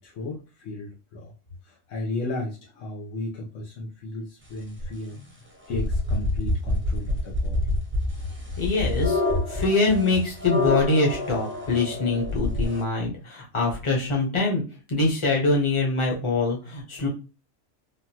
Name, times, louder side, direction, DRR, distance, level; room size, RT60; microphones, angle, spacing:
voice 1, 0.0-1.3 1.6-7.7, left 2 dB, 90° left, -3 dB, 1.1 m, -35 dB
sound 1, 4.8-4.9 5.7-12.8, left 2 dB, 10° right, 0.6 m, -27 dB
voice 2, 8.6-9.2 9.5-14.6 14.9-17.1, left 3 dB, 30° left, -1 dB, 0.8 m, -24 dB
3.4 x 2.3 x 2.8 m, 0.32 s
omnidirectional pair, 1.3 m